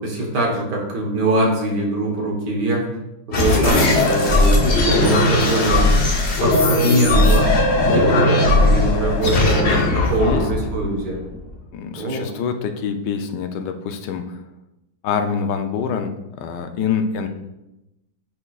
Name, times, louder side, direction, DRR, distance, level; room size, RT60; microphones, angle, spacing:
voice 1, 0.0-2.9 3.3-5.9 6.4-7.5 7.9-11.2 12.0-12.3, right 1 dB, 65° right, 0 dB, 1.8 m, -22 dB
sound 1, 3.3-11.5, left 2 dB, 45° left, 1.0 m, -17 dB
voice 2, 10.1-10.4 11.7-14.4 15.0-17.3, left 6 dB, 70° left, 6 dB, 1.2 m, -25 dB
9.7 x 4.5 x 2.4 m, 0.93 s
omnidirectional pair, 2.1 m